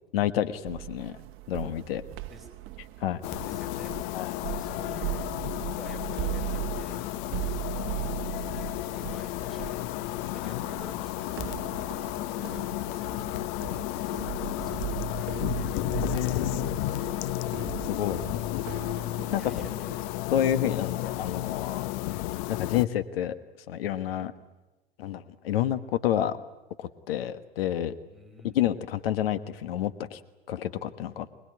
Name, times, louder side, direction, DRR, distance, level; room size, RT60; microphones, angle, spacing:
voice 1, 0.1-1.2 1.5-2.0 3.0-3.2 4.1-4.3 7.3-7.4 10.5-10.6 15.9-16.7 17.9-18.2 19.3-19.4 20.3-21.9 22.5-23.3 23.7-24.3 25.0-26.4 26.8-27.9 28.4-30.2 30.5-31.3, left 11 dB, 70° left, 12 dB, 1.4 m, -29 dB
sound 1, 0.7-20.2, right 17 dB, 40° right, 1.2 m, -38 dB
sound 2, 3.2-22.9, left 16 dB, 50° left, 0.8 m, -32 dB
voice 2, 3.4-3.9 4.4-7.0 7.7-8.4 9.1-11.8 12.3-13.6 14.0-15.2 15.5-16.0 16.9-17.5 19.3-20.0 28.1-28.7, right 1 dB, ahead, 6 dB, 4.6 m, -49 dB
25.0 x 20.0 x 9.4 m, 1.1 s
hypercardioid pair, 90°, 31 cm